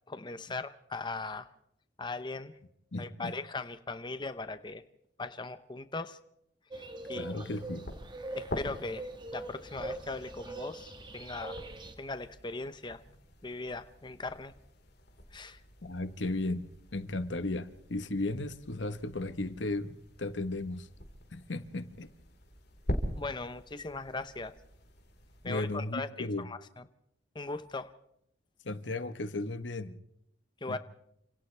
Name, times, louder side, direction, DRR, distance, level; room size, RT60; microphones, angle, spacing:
voice 1, 0.1-1.5 2.0-2.5 3.0-4.8 5.2-6.2 6.7-7.5 8.3-11.6 12.0-13.0 13.4-14.5 15.3-15.6 23.2-24.5 25.4-26.6 27.3-27.9 30.6-30.8, left 3 dB, 25° left, 0.8 m, -39 dB
voice 2, 2.9-3.3 7.1-7.9 15.8-16.7 16.9-20.9 21.3-22.1 25.4-26.5 28.6-29.9 30.7-30.8, left 2 dB, 85° left, 1.3 m, -35 dB
sound 1, 6.7-11.9, right 2 dB, 25° right, 1.7 m, -42 dB
sound 2, 7.4-25.7, equal, 60° left, 4.3 m, -44 dB
29.5 x 26.5 x 3.4 m
head